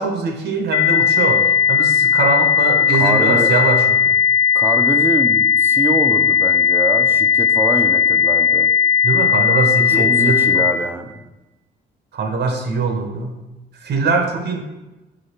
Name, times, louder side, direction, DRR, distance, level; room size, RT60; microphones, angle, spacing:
voice 1, 0.0-4.2 9.0-10.6 12.1-13.3 13.8-14.6, right 4 dB, 60° right, 4 dB, 0.7 m, -22 dB
sound 1, 0.7-10.7, left 7 dB, 25° left, 1.3 m, -16 dB
voice 2, 2.9-3.5 4.5-8.7 9.9-11.1, right 2 dB, 10° right, 6 dB, 0.5 m, -24 dB
5.0 x 3.6 x 2.8 m, 1.0 s
cardioid pair, 90°, 20 cm